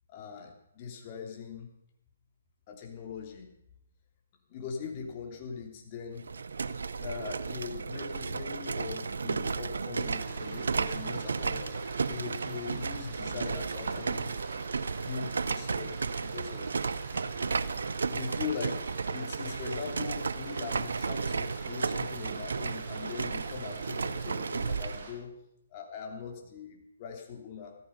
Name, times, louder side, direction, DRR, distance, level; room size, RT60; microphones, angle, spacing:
voice 1, 0.1-1.7 2.7-3.5 4.5-6.3 7.0-14.3 14.9-16.8 18.1-25.3 25.7-27.8, left 6 dB, 35° left, 2 dB, 3.0 m, -41 dB
sound 1, 6.2-25.0, right 4 dB, 70° right, 0.7 m, -33 dB
sound 2, 9.9-25.1, right 4 dB, 45° right, 6.9 m, -47 dB
14.5 x 14.0 x 5.6 m, 0.78 s
figure-of-eight pair, 135°, 0 cm